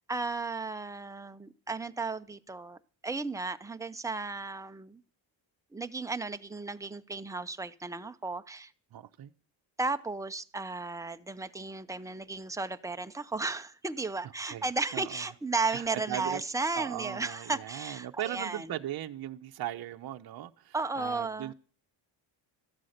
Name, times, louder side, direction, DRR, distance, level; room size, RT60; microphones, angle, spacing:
voice 1, 0.0-5.0 5.7-8.7 9.8-18.8 20.7-21.5, right 3 dB, 5° right, 0.7 m, -34 dB
voice 2, 8.9-9.3 14.4-14.7 14.9-15.2 15.7-16.4 16.7-21.5, right 12 dB, 50° right, 0.9 m, -38 dB
13.5 x 8.3 x 6.6 m
cardioid pair, 75°, 47 cm